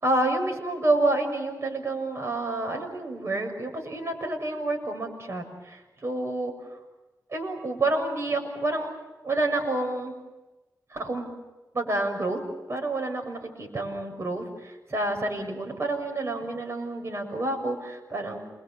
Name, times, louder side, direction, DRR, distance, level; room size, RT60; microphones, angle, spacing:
voice 1, 0.0-6.5 7.3-8.9 9.2-10.1 10.9-11.4 11.7-12.4 12.7-18.4, right 2 dB, 40° right, 2 dB, 6.7 m, -28 dB
28.0 x 23.0 x 7.3 m, 1.1 s
wide cardioid pair, 90°, 7 cm